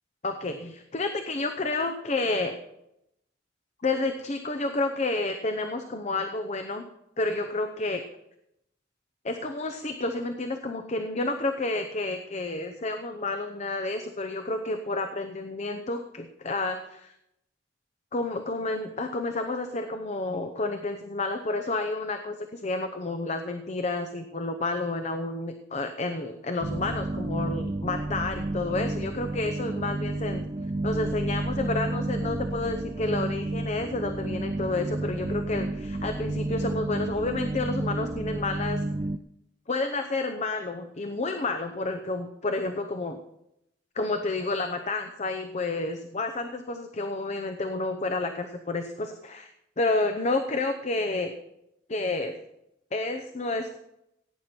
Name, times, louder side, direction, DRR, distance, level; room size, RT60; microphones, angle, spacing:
voice 1, 0.2-2.6 3.8-6.8 7.2-8.0 9.2-17.1 18.1-30.4 30.8-38.8 39.7-43.2 44.0-51.3 51.9-52.3 52.9-53.8, left 2 dB, 40° left, 7 dB, 0.8 m, -30 dB
sound 1, 26.6-39.2, right 2 dB, 30° right, 0.4 m, -31 dB
16.5 x 9.3 x 4.4 m, 0.81 s
head